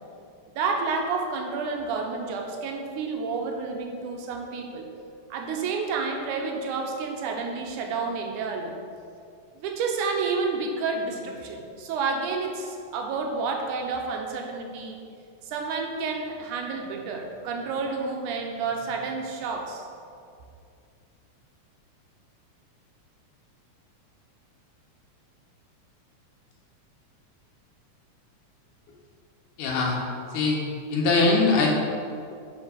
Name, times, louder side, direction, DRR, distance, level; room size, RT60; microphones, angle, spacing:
voice 1, 0.5-4.9 5.3-8.8 9.6-15.0 15.5-19.9, right 4 dB, 85° right, 2 dB, 2.3 m, -30 dB
voice 2, 29.6-30.0 30.3-30.6 30.9-31.7, left 3 dB, 80° left, -2 dB, 2.6 m, -21 dB
9.5 x 4.5 x 5.1 m, 2.4 s
omnidirectional pair, 3.5 m